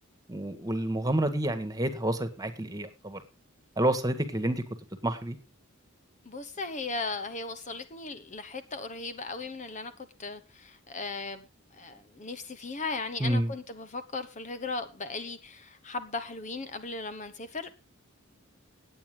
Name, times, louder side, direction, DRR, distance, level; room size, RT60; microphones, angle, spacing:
voice 1, 0.3-3.2 3.8-4.6 5.0-5.4 13.2-13.5, right 1 dB, 15° right, 1.7 m, -29 dB
voice 2, 6.2-9.9 10.2-11.4 11.7-17.7, left 3 dB, 35° left, 1.0 m, -37 dB
17.0 x 9.1 x 3.8 m
head